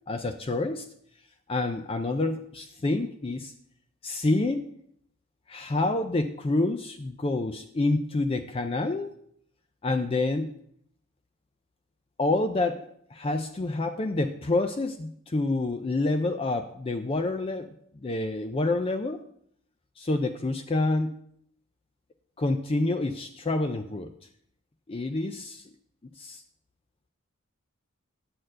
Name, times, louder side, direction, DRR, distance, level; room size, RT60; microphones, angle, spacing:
voice 1, 0.1-0.9 1.5-3.5 4.0-4.7 5.5-9.1 9.8-10.5 12.2-17.7 18.0-19.2 20.0-21.1 22.4-24.1 24.9-25.6 26.2-26.4, left 2 dB, 25° left, 7 dB, 0.4 m, -28 dB
9.4 x 4.4 x 7.5 m, 0.67 s
head